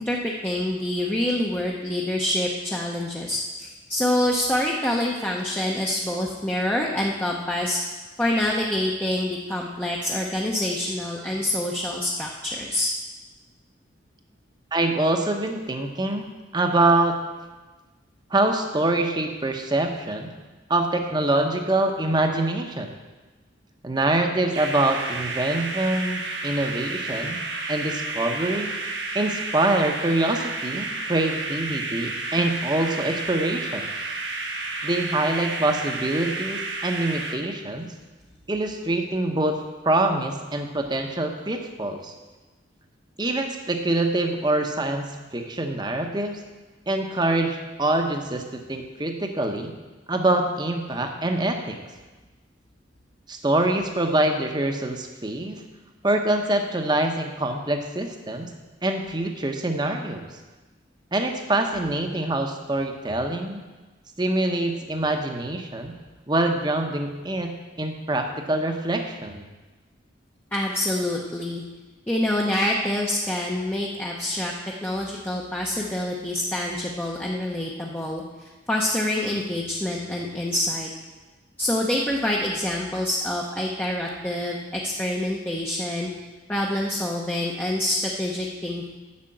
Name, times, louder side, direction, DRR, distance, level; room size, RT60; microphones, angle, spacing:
voice 1, 0.0-7.8 8.2-12.9 70.5-71.6 72.1-74.5 74.8-80.9 81.6-86.1 86.5-88.9, left 1 dB, 10° left, -3 dB, 0.8 m, -26 dB
voice 2, 14.7-17.2 18.3-20.3 20.7-22.9 23.8-27.4 27.7-28.7 29.1-33.9 34.8-37.9 38.5-42.1 43.2-46.4 46.9-49.7 50.1-51.8 53.3-55.6 56.0-58.5 58.8-60.3 61.1-63.6 64.2-65.9 66.3-67.5 67.8-69.4, right 2 dB, 20° right, 4 dB, 0.9 m, -25 dB
sound 1, 24.5-37.4, right 3 dB, 70° right, 1.3 m, -31 dB
8.5 x 6.5 x 7.8 m, 1.2 s
head